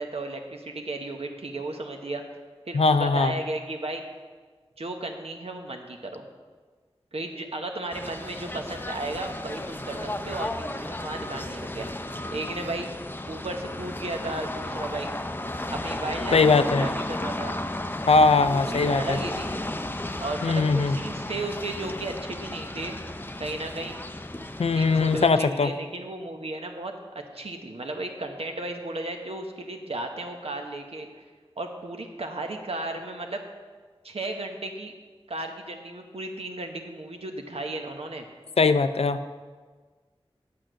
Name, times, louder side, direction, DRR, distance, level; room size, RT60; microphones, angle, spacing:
voice 1, 0.0-2.2 2.7-4.0 4.8-6.3 7.1-11.9 12.3-12.9 13.3-15.1 15.7-17.6 18.4-19.5 20.2-23.0 23.4-24.0 24.7-31.2 31.6-33.4 34.0-34.9 35.3-38.3, right 2 dB, 75° right, 4 dB, 1.0 m, -34 dB
voice 2, 2.7-3.3 16.3-16.9 18.1-19.2 20.4-21.0 24.6-25.7 38.6-39.2, left 4 dB, 90° left, 11 dB, 0.5 m, -20 dB
sound 1, 7.9-25.3, left 1 dB, 20° left, 0.5 m, -34 dB
8.7 x 6.3 x 6.3 m, 1.4 s
wide cardioid pair, 55°, 10 cm